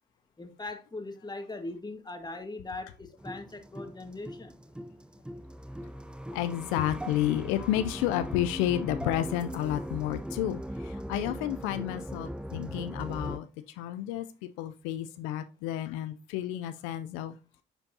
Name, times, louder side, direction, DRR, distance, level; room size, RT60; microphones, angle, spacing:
voice 1, 0.4-4.6, left 2 dB, 20° left, 1.6 m, -40 dB
sound 1, 3.2-13.4, equal, 5° right, 0.5 m, -39 dB
voice 2, 6.3-17.4, left 12 dB, 85° left, 0.5 m, -31 dB
9.8 x 4.4 x 2.7 m
supercardioid pair, 60°, 20 cm